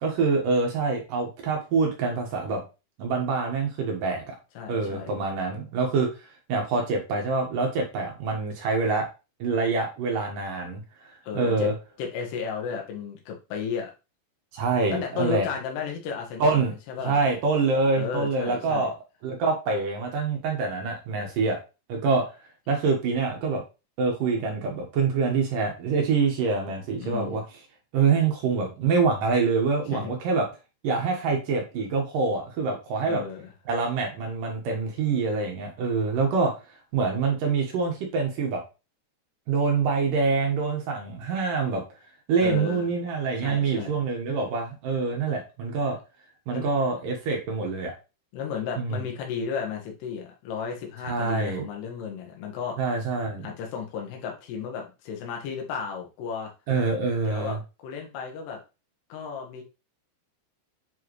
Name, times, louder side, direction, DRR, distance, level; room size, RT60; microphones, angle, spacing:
voice 1, 0.0-2.6 3.0-4.3 4.7-6.1 6.5-9.1 9.4-10.8 11.3-11.7 14.5-15.5 16.4-16.7 17.0-18.9 19.2-21.6 21.9-22.2 22.7-23.6 24.0-27.4 27.9-30.5 30.8-33.2 33.7-36.5 36.9-38.6 39.5-41.8 42.3-46.0 46.5-47.9 48.8-49.0 51.0-51.7 52.8-53.5 56.7-57.6, right 4 dB, 60° right, 1 dB, 2.6 m, -25 dB
voice 2, 4.5-5.1 11.2-11.7 12.0-13.9 14.9-17.2 17.9-18.9 27.0-27.4 29.9-30.1 33.1-33.5 42.4-42.8 43.4-44.0 46.5-46.7 48.3-52.8 53.4-56.5 57.1-58.6 59.1-59.6, left 6 dB, 75° left, 1 dB, 3.4 m, -34 dB
7.9 x 4.7 x 3.1 m, 0.29 s
omnidirectional pair, 5.0 m